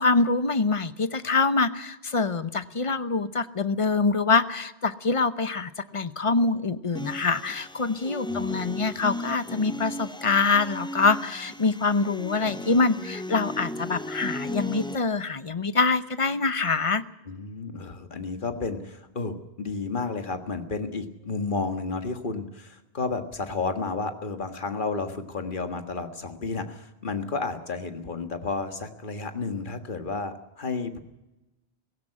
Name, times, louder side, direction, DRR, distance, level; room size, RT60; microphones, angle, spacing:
voice 1, 0.0-17.0, left 4 dB, 35° left, 13 dB, 0.8 m, -25 dB
sound 1, 7.0-15.0, left 1 dB, 5° left, 0.6 m, -36 dB
voice 2, 17.3-31.0, left 4 dB, 55° left, 7 dB, 1.8 m, -32 dB
17.0 x 16.5 x 9.9 m, 1.0 s
omnidirectional pair, 1.0 m